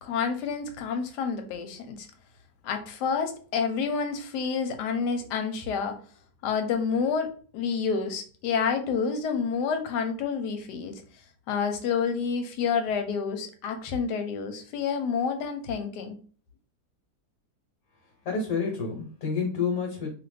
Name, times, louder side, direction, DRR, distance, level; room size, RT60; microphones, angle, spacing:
voice 1, 0.0-2.1 2.6-6.0 6.4-7.3 7.5-11.0 11.5-16.1, left 6 dB, 85° left, 7 dB, 1.2 m, -29 dB
voice 2, 18.2-20.1, left 5 dB, 60° left, 0 dB, 1.2 m, -29 dB
2.6 x 2.5 x 3.2 m, 0.41 s
omnidirectional pair, 1.8 m